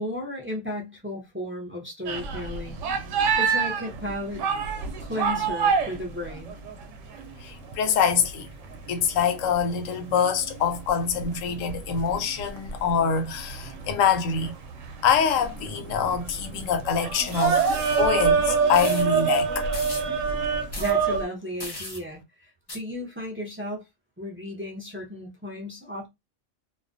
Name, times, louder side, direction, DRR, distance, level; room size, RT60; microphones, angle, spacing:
voice 1, 0.0-2.8 3.3-4.5 5.0-6.6 20.8-23.8 24.2-26.1, left 1 dB, 20° right, 0.3 m, -34 dB
sound 1, 2.1-7.3 7.7-7.8 8.1-21.2, right 6 dB, 70° right, 0.9 m, -26 dB
voice 2, 7.4-8.5 8.9-14.5 15.0-17.6 18.0-19.7, left 7 dB, 75° left, 1.0 m, -25 dB
sound 2, 17.3-18.0 18.7-19.1 19.7-20.1 20.7-20.9 21.6-22.0 22.7-22.8, left 2 dB, 25° left, 0.6 m, -37 dB
2.4 x 2.1 x 2.5 m
omnidirectional pair, 1.4 m